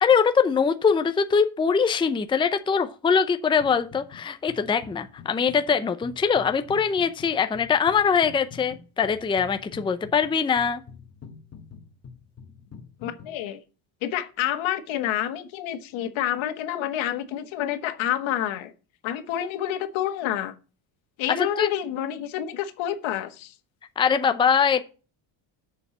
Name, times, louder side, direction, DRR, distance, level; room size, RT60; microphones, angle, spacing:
voice 1, 0.0-10.8 21.6-21.7 24.0-24.8, left 6 dB, 10° left, 0.5 m, -22 dB
sound 1, 3.6-4.2 4.5-13.3, left 6 dB, 30° left, 1.6 m, -46 dB
voice 2, 13.0-13.6 14.0-18.7 19.0-20.5 21.2-23.5, left 11 dB, 80° left, 1.6 m, -28 dB
6.9 x 6.8 x 7.1 m
cardioid pair, 160°, 46 cm